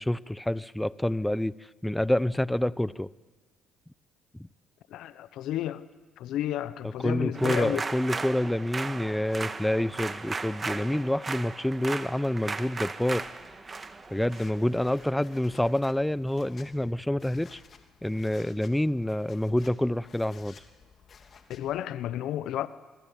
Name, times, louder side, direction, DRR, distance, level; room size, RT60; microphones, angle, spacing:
voice 1, 0.0-1.5 1.8-3.1 7.0-13.3 14.1-17.6 18.0-20.6, left 1 dB, 5° left, 0.8 m, -27 dB
voice 2, 4.9-5.8 6.2-7.8 21.5-22.7, left 12 dB, 75° left, 0.9 m, -32 dB
sound 1, 7.3-15.7, right 4 dB, 30° right, 1.7 m, -36 dB
sound 2, 13.2-21.8, left 6 dB, 50° left, 3.0 m, -55 dB
26.0 x 22.5 x 9.1 m
supercardioid pair, 65°, 0 cm